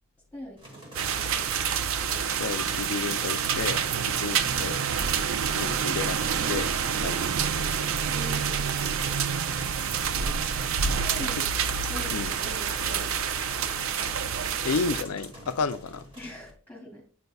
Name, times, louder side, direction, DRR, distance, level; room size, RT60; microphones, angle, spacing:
voice 1, 0.3-1.4 8.1-8.7 11.0-11.4 11.9-13.2 16.2-17.0, left 1 dB, 10° left, 2.8 m, -43 dB
sound 1, 0.6-16.5, right 1 dB, 25° right, 1.4 m, -46 dB
sound 2, 0.9-15.0, right 7 dB, 60° right, 0.4 m, -28 dB
voice 2, 2.4-4.8 5.6-7.2 7.7-7.8 11.2-11.3 12.1-12.3 14.6-16.0, left 5 dB, 75° left, 0.4 m, -32 dB
8.6 x 5.3 x 2.3 m
head